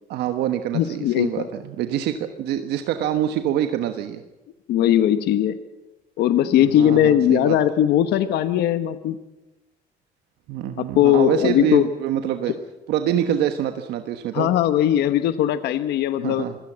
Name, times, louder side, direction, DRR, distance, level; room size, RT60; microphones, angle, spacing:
voice 1, 0.1-4.2 6.5-7.6 10.5-12.5 12.9-14.5 16.2-16.6, right 10 dB, 80° right, 7 dB, 1.3 m, -25 dB
voice 2, 0.7-1.5 4.7-5.6 6.2-9.2 10.8-11.8 14.3-16.4, left 11 dB, 75° left, 11 dB, 1.1 m, -19 dB
24.5 x 17.0 x 7.5 m, 1.0 s
cardioid pair, 110°, 17 cm